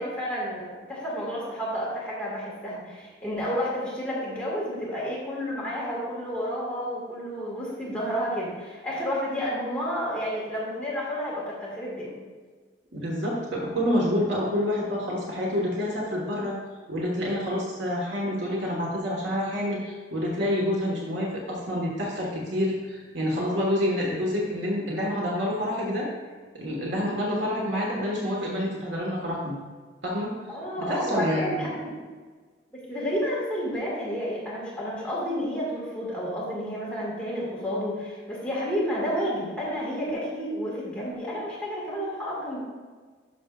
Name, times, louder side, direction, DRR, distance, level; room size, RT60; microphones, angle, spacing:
voice 1, 0.0-12.2 30.5-31.9 32.9-42.6, equal, 5° left, -7 dB, 1.8 m, -30 dB
voice 2, 12.9-16.6 16.9-26.1 26.5-29.5 30.0-31.6, equal, 80° right, -3 dB, 1.5 m, -28 dB
11.5 x 6.2 x 2.4 m, 1.5 s
head